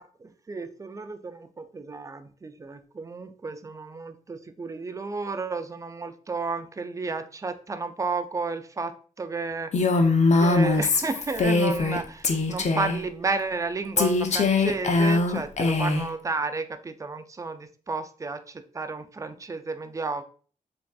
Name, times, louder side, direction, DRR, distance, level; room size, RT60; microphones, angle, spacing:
voice 1, 0.0-9.7 10.4-18.4 18.7-20.2, right 3 dB, 20° right, 10 dB, 0.3 m, -32 dB
Female speech woman speaking, 9.7-12.0 12.2-13.0 14.0-16.1, left 3 dB, 50° left, 0.5 m, -22 dB
3.2 x 2.5 x 2.3 m, 0.41 s
cardioid pair, 55°, 15 cm